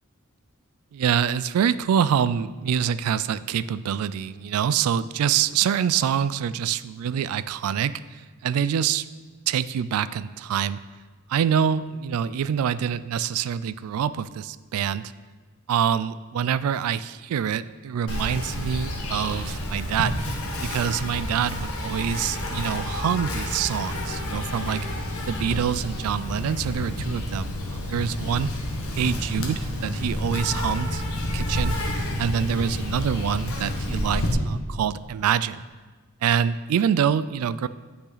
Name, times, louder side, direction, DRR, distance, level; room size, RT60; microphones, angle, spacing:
voice 1, 0.9-9.1 9.5-10.8 11.3-15.1 15.7-20.2 20.6-24.9 25.3-28.5 28.9-31.8 32.2-35.6 36.2-37.7, right 8 dB, 90° right, 16 dB, 0.3 m, -25 dB
Insect, 18.1-34.3, left 1 dB, 90° left, 1.2 m, -29 dB
8.4 x 5.9 x 4.0 m, 1.4 s
head